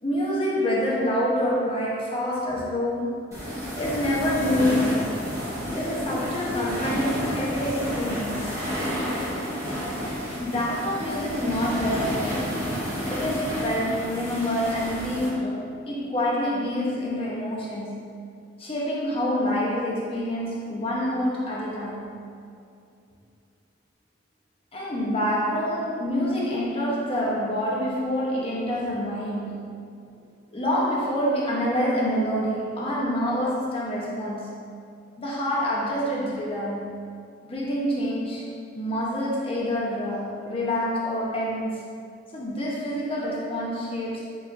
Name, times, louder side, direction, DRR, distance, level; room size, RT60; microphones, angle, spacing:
voice 1, 0.0-3.3 3.8-5.2 5.7-8.7 10.4-12.7 13.0-18.1 18.6-22.1 24.7-29.7 30.5-34.7 35.2-36.9 37.4-41.8 42.3-44.4, equal, 30° left, -5 dB, 0.7 m, -27 dB
sound 1, 3.3-15.3, equal, 15° right, 0.9 m, -30 dB
6.9 x 2.5 x 2.5 m, 2.5 s
head